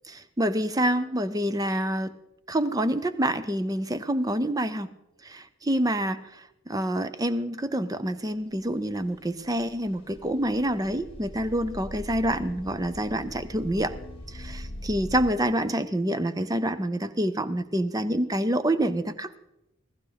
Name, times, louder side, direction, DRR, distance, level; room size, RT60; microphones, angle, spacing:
voice 1, 0.1-2.1 2.5-4.9 5.2-14.0 14.3-19.4, right 1 dB, 20° right, 13 dB, 0.6 m, -27 dB
sound 1, 8.5-15.3, left 1 dB, 30° left, 2.2 m, -41 dB
16.0 x 15.0 x 4.0 m, 0.87 s
head